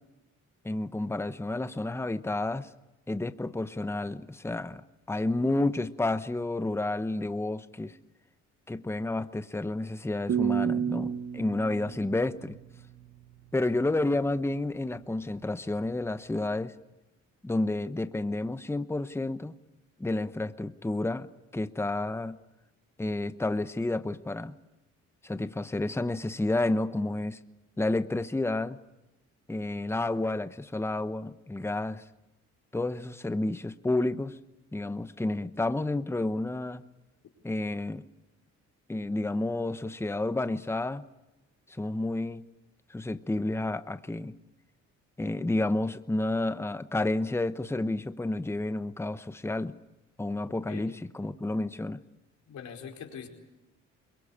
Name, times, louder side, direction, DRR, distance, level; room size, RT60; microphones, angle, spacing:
voice 1, 0.6-2.7 3.1-4.8 5.1-7.9 8.7-12.5 13.5-16.7 17.4-19.5 20.0-21.3 21.5-22.4 23.0-24.5 25.2-27.4 27.8-28.8 29.5-32.0 32.7-34.3 34.7-36.8 37.4-38.0 38.9-41.0 41.8-42.4 42.9-44.3 45.2-49.7 50.2-52.0, left 2 dB, 10° left, 12 dB, 1.0 m, -30 dB
sound 1, 10.3-13.2, right 8 dB, 60° right, 1.5 m, -31 dB
voice 2, 52.5-53.3, left 7 dB, 70° left, 2 dB, 4.8 m, -42 dB
23.5 x 22.0 x 8.7 m, 1.0 s
cardioid pair, 90°, 30 cm